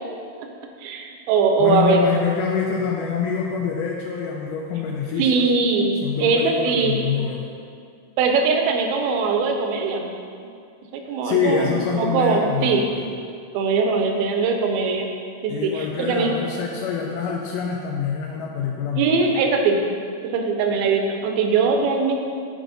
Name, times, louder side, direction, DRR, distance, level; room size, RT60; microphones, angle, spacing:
voice 1, 0.8-2.0 5.2-7.0 8.2-10.1 11.1-11.7 12.0-12.9 13.5-15.1 15.4-16.4 19.0-19.9 20.3-22.1, right 4 dB, 85° right, 3 dB, 2.4 m, -21 dB
voice 2, 1.6-5.5 6.0-7.5 11.2-13.0 15.5-19.3, left 6 dB, 85° left, -1 dB, 1.9 m, -25 dB
9.1 x 4.9 x 4.0 m, 2.3 s
omnidirectional pair, 4.4 m